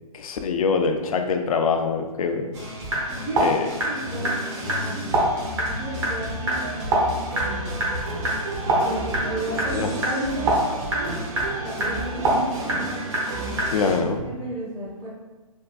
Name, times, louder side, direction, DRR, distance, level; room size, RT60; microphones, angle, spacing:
voice 1, 0.1-2.5 3.4-3.7 9.7-9.9 13.7-14.2, left 5 dB, 70° left, 5 dB, 0.4 m, -24 dB
sound 1, 2.5-14.0, right 1 dB, 50° right, 1.0 m, -26 dB
voice 2, 3.1-4.3 4.6-7.8 8.8-10.7 11.0-15.1, right 1 dB, 15° right, -10 dB, 0.6 m, -34 dB
sound 2, 6.5-13.6, right 3 dB, 70° right, 0.5 m, -34 dB
3.5 x 2.2 x 2.4 m, 1.2 s
hypercardioid pair, 145°, 19 cm